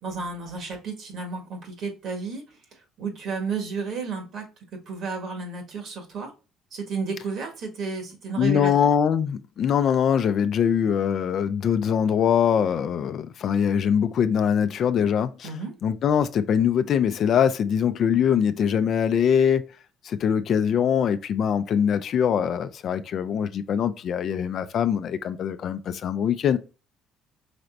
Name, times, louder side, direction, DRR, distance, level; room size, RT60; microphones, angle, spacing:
voice 1, 0.0-2.4 3.0-4.4 4.7-6.3 6.7-8.9 15.4-15.7, right 4 dB, 65° right, 1.6 m, -32 dB
voice 2, 8.4-15.5 15.8-19.6 20.0-26.6, left 8 dB, 55° left, 0.4 m, -23 dB
5.0 x 3.3 x 2.5 m
supercardioid pair, 85°, 0 cm